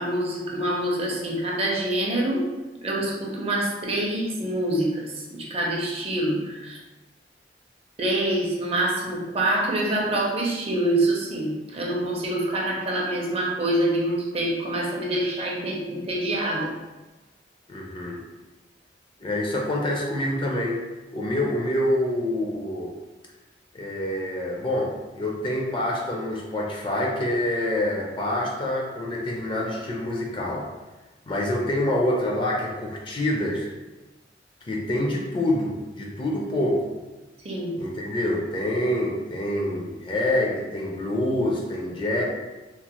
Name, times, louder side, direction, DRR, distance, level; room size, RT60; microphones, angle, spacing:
voice 1, 0.0-2.5 2.8-6.8 8.0-16.7 37.4-37.8, right 1 dB, 35° right, -2 dB, 0.5 m, -26 dB
voice 2, 17.7-18.2 19.2-20.8 21.1-22.9 23.7-30.7 31.3-33.7 34.7-36.9 37.8-42.2, left 1 dB, 30° left, -2 dB, 0.4 m, -26 dB
2.9 x 2.0 x 2.9 m, 1.1 s
head